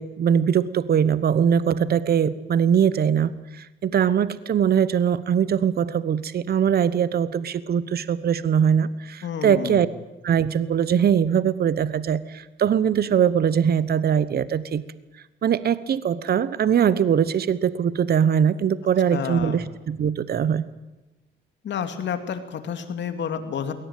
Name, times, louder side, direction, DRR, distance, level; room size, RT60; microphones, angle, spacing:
voice 1, 0.0-9.9 10.2-14.8 15.4-20.6, right 8 dB, 50° right, 16 dB, 1.0 m, -21 dB
voice 2, 9.2-9.9 19.1-19.6 21.6-23.7, left 7 dB, 65° left, 8 dB, 2.7 m, -30 dB
22.0 x 18.0 x 9.2 m, 1.0 s
cardioid pair, 90°, 20 cm